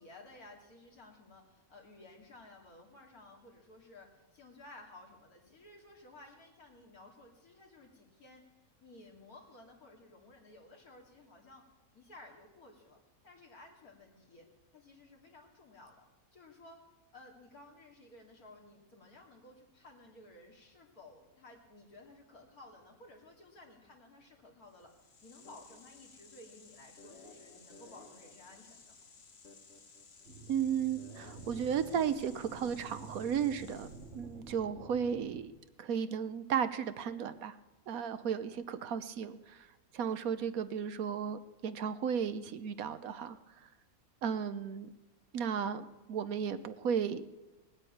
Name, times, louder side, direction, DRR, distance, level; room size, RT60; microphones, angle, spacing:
voice 1, 0.0-8.4 8.8-11.6 11.9-14.5 14.7-16.1 16.3-16.8 17.1-29.0, left 2 dB, 85° left, 0 dB, 3.1 m, -56 dB
sound 1, 24.7-34.3, left 4 dB, 50° left, 1.4 m, -56 dB
sound 2, 30.2-35.5, right 3 dB, 55° right, 2.7 m, -50 dB
voice 2, 30.5-33.9 34.1-35.5 35.8-37.6 37.9-39.7 39.9-43.7 44.2-44.9 45.3-47.2, right 7 dB, 75° right, 12 dB, 1.3 m, -34 dB
19.0 x 8.8 x 8.6 m, 1.1 s
omnidirectional pair, 1.5 m